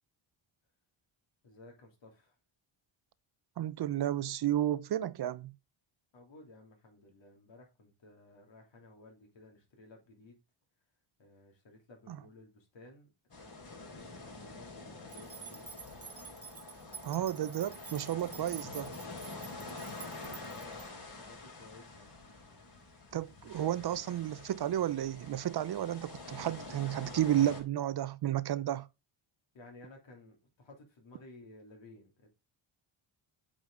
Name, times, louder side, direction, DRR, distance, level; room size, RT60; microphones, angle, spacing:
voice 1, 1.4-2.3 6.1-10.4 11.2-15.7 20.4-22.6 23.3-24.4 29.5-32.3, left 2 dB, 65° left, 3.4 m, -56 dB
voice 2, 3.6-5.5 12.1-12.2 17.0-18.9 23.1-28.9, right 12 dB, 55° right, 0.6 m, -32 dB
sound 1, 13.3-27.6, left 3 dB, 50° left, 4.2 m, -47 dB
sound 2, 15.1-20.9, right 6 dB, 30° right, 1.5 m, -49 dB
8.5 x 5.1 x 3.9 m
wide cardioid pair, 135°, 48 cm